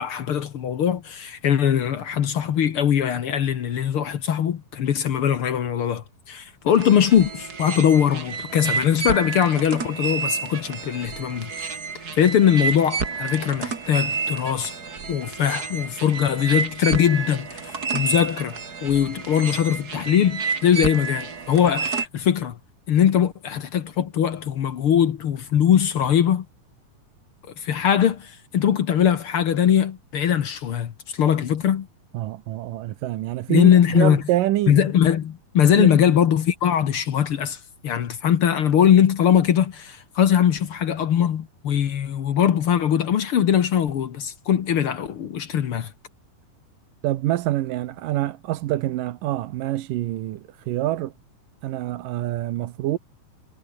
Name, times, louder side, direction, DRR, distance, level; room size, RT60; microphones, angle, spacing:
voice 1, 0.0-11.8 12.1-14.7 15.1-22.6 22.9-26.5 27.6-31.9 33.5-34.2 34.7-37.6 37.8-45.9, left 9 dB, 55° left, 1.6 m, -21 dB
sound 1, 6.7-22.1, right 5 dB, 30° right, 2.4 m, -30 dB
voice 2, 32.1-34.8 35.8-35.9 47.0-51.1 51.6-53.0, right 15 dB, 80° right, 2.6 m, -26 dB
omnidirectional pair, 3.9 m